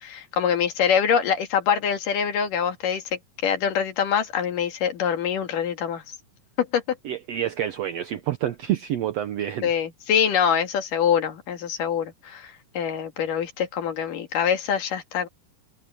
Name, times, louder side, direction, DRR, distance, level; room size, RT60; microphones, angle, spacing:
voice 1, 0.0-3.0 3.4-6.0 6.7-7.0 9.6-15.3, left 7 dB, 75° left, 3.6 m, -24 dB
voice 2, 7.0-9.7, right 11 dB, 75° right, 1.5 m, -28 dB
omnidirectional pair, 3.9 m